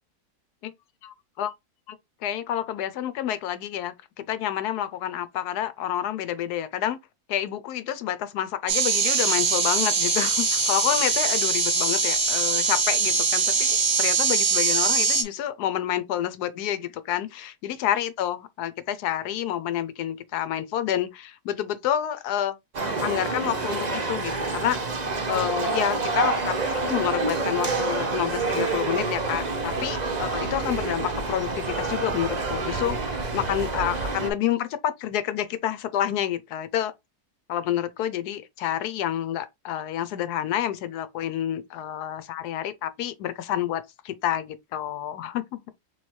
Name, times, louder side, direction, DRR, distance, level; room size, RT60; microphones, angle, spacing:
voice 1, 1.0-1.5 1.9-2.0 2.2-7.0 7.3-22.6 23.0-24.8 25.3-26.5 26.9-36.9 37.5-45.7, left 11 dB, 85° left, 1.2 m, -29 dB
sound 1, 8.7-15.2, right 4 dB, 80° right, 1.8 m, -22 dB
sound 2, 22.7-34.3, right 3 dB, 40° right, 0.7 m, -28 dB
3.4 x 3.2 x 4.2 m
omnidirectional pair, 1.7 m